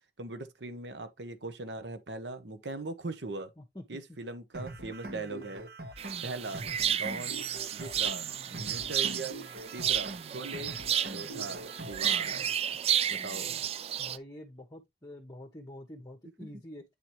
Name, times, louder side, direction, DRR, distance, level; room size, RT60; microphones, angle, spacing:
voice 1, 0.2-3.5 3.9-5.7 6.2-6.6 6.9-7.4 7.7-9.4 9.7-10.8 11.1-12.8 13.1-13.5 16.4-16.5, right 2 dB, 80° right, 1.1 m, -40 dB
voice 2, 3.6-4.2 13.0-13.6 14.0-16.9, left 1 dB, 20° left, 1.0 m, -47 dB
sound 1, 4.5-12.5, right 2 dB, 60° right, 1.4 m, -44 dB
sound 2, 6.0-14.2, right 9 dB, 35° right, 0.3 m, -32 dB
8.8 x 4.4 x 3.1 m
head